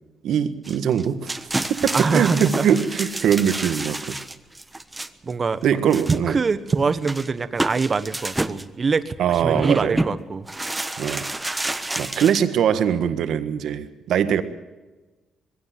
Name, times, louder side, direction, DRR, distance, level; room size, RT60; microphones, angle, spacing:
voice 1, 0.2-1.3 1.7-4.2 5.6-6.4 9.2-10.0 11.0-11.2 11.9-14.4, right 8 dB, 75° right, 10 dB, 1.6 m, -22 dB
sound 1, 0.6-5.3 5.9-6.4 6.7-6.8 7.0-8.6 9.4-10.1 10.5-12.4, right 2 dB, 15° right, 1.2 m, -29 dB
voice 2, 1.9-2.8 5.2-5.6 6.1-10.5, right 4 dB, 35° right, 12 dB, 1.4 m, -24 dB
21.5 x 16.5 x 7.6 m, 1.2 s
cardioid pair, 90°, 0 cm